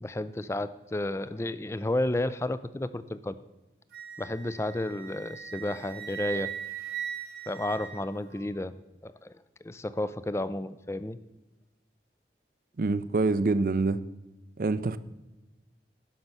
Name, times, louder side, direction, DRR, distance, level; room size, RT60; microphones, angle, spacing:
voice 1, 0.0-3.4 4.2-6.6 7.5-8.8 9.0-9.4 9.6-11.2, left 1 dB, 15° left, 0.4 m, -32 dB
Wind instrument woodwind instrument, 3.9-8.5, right 10 dB, 65° right, 1.1 m, -39 dB
voice 2, 12.8-14.0 14.6-15.0, right 3 dB, 50° right, 0.5 m, -25 dB
11.5 x 5.5 x 6.0 m
head